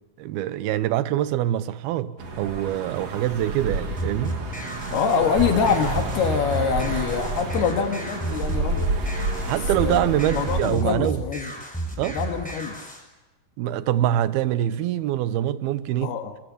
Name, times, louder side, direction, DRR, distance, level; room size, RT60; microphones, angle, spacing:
voice 1, 0.2-4.4 9.4-11.2 12.0-12.2 13.6-16.2, right 12 dB, 80° right, 2.8 m, -24 dB
sound 1, 2.2-10.6, right 2 dB, 45° right, 3.6 m, -29 dB
sound 2, 4.0-13.0, right 1 dB, ahead, 6.1 m, -32 dB
voice 2, 4.9-9.0 9.4-10.0 10.3-11.5 12.0-12.8 16.0-16.3, left 6 dB, 80° left, 3.8 m, -25 dB
25.0 x 23.5 x 7.0 m
omnidirectional pair, 4.6 m